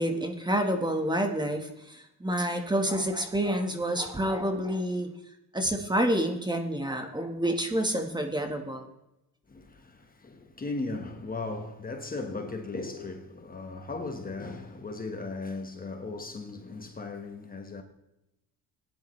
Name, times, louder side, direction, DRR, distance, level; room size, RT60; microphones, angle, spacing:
voice 1, 0.0-5.1 5.5-8.9, right 1 dB, 10° right, 1.4 m, -28 dB
voice 2, 9.5-17.8, left 3 dB, 25° left, 1.3 m, -37 dB
17.0 x 10.5 x 3.2 m
cardioid pair, 110°, 37 cm